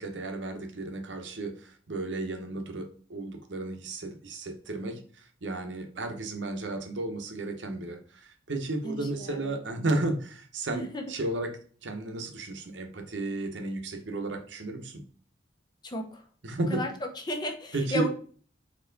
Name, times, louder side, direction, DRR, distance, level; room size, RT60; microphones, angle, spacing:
voice 1, 0.0-15.0 16.4-16.8 17.7-18.1, right 2 dB, 70° right, 5 dB, 0.9 m, -33 dB
voice 2, 8.8-9.6 10.7-11.0 15.8-16.2 16.7-18.1, left 1 dB, 20° left, 4 dB, 0.6 m, -34 dB
4.4 x 2.9 x 3.8 m, 0.43 s
head